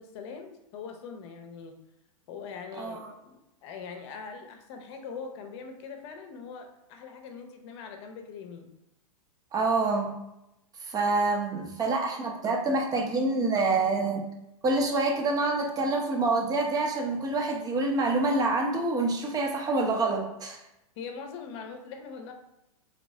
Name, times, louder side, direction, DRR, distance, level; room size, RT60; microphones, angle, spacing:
voice 1, 0.0-1.7 2.3-8.7 21.0-22.3, left 5 dB, 50° left, 5 dB, 0.8 m, -42 dB
voice 2, 2.8-3.1 9.5-10.2 10.8-14.2 14.6-20.6, right 3 dB, 20° right, 1 dB, 0.8 m, -27 dB
3.6 x 3.0 x 3.7 m, 0.88 s
hypercardioid pair, 115°, 18 cm